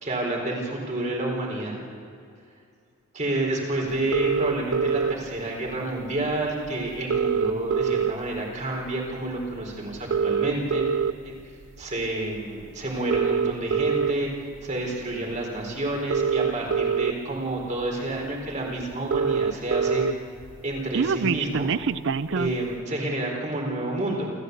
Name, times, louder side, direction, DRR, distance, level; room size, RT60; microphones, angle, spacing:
voice 1, 0.0-1.8 3.1-10.9 11.2-11.4 11.8-14.3 14.6-20.0 20.6-21.7 22.3-24.3, right 1 dB, 35° right, 0 dB, 4.5 m, -29 dB
sound 1, 4.1-5.1 6.3-6.4 6.7-6.8 6.9-8.4 8.9-9.1 9.9-11.1 11.8-12.0 13.0-14.1 15.3-15.4 15.9-17.1 17.8-17.9 18.2-18.3 18.5-18.6 18.8-20.1 20.4-22.6, right 6 dB, 55° right, 0.4 m, -24 dB
28.0 x 15.0 x 8.2 m, 2.5 s
head